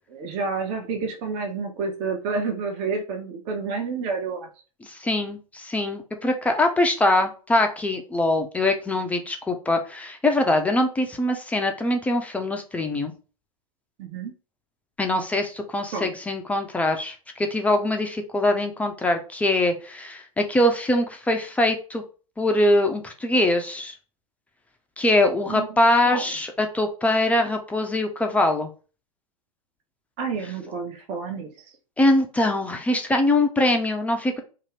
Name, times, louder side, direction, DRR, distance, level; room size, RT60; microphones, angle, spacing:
voice 1, 0.1-4.5 14.0-14.3 15.9-16.1 25.5-25.7 26.1-26.3 30.2-31.5, right 4 dB, 40° right, 3 dB, 0.7 m, -29 dB
voice 2, 4.8-13.1 15.0-22.0 22.4-24.0 25.0-28.7 32.0-34.4, left 1 dB, 5° left, 4 dB, 0.3 m, -23 dB
2.6 x 2.4 x 3.1 m, 0.36 s
figure-of-eight pair, 100°, 19 cm